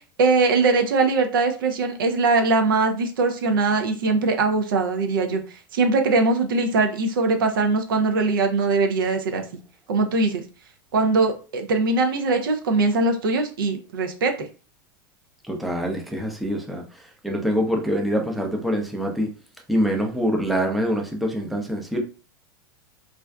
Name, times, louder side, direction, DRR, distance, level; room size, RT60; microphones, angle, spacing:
voice 1, 0.2-9.4 9.9-10.4 10.9-14.3, right 3 dB, 75° right, 0.6 m, -21 dB
voice 2, 15.5-16.8 17.2-19.3 19.7-22.0, equal, ahead, 0.5 m, -24 dB
2.5 x 2.2 x 2.2 m
hypercardioid pair, 105°, 11 cm